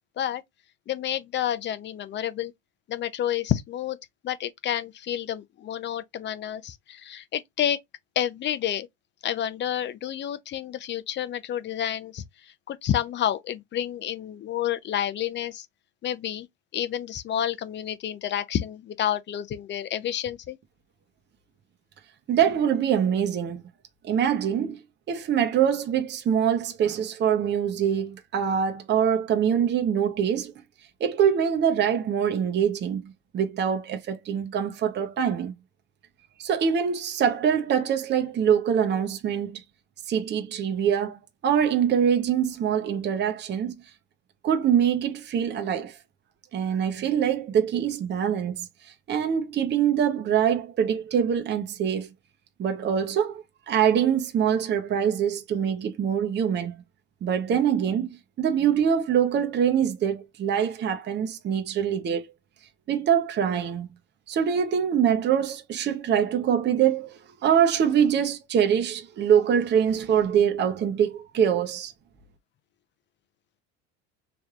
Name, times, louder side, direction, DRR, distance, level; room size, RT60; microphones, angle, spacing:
voice 1, 0.9-2.5 2.9-4.0 4.2-7.8 8.2-8.9 9.2-12.2 12.7-15.7 16.0-16.5 16.7-20.6, left 10 dB, 35° left, 0.6 m, -29 dB
voice 2, 22.3-23.6 24.0-24.8 25.1-30.5 31.0-35.5 36.4-39.6 40.1-43.7 44.4-46.0 46.5-52.1 52.6-56.7 57.2-58.1 58.4-62.3 62.9-63.9 64.3-71.9, right 8 dB, 35° right, 0.9 m, -24 dB
4.3 x 3.3 x 2.4 m
supercardioid pair, 110°, 31 cm